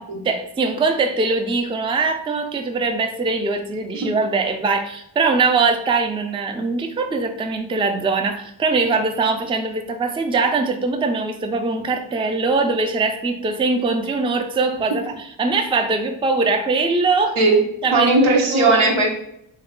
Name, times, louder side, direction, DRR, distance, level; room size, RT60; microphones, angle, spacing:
voice 1, 0.2-17.4 17.8-18.1 18.5-18.9, right 3 dB, 10° right, 5 dB, 0.3 m, -22 dB
voice 2, 17.9-19.1, right 2 dB, 85° right, 0 dB, 0.9 m, -17 dB
3.2 x 2.2 x 3.6 m, 0.74 s
cardioid pair, 45°, 48 cm